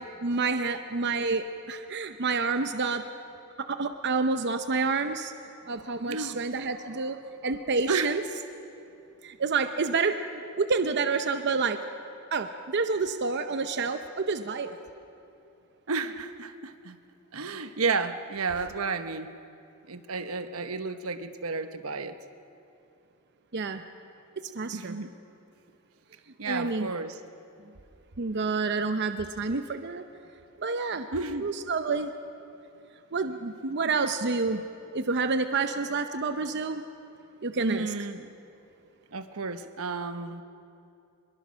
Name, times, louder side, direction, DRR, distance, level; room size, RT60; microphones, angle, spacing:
voice 1, 0.2-3.0 3.6-5.3 5.7-7.2 7.4-8.2 9.2-10.1 10.6-11.8 12.3-14.8 23.5-23.8 24.4-25.0 26.4-26.9 28.2-30.0 30.6-31.1 31.4-32.1 33.1-34.6 34.9-36.8 37.4-37.9, right 4 dB, 55° right, 8 dB, 0.8 m, -28 dB
voice 2, 6.0-6.4 7.9-8.1 15.9-17.0 17.3-19.3 19.9-22.2 24.7-25.1 26.4-27.2 31.1-31.5 33.6-33.9 37.6-38.3 39.1-40.4, right 4 dB, 90° right, 10 dB, 1.1 m, -32 dB
24.0 x 22.0 x 6.3 m, 2.6 s
head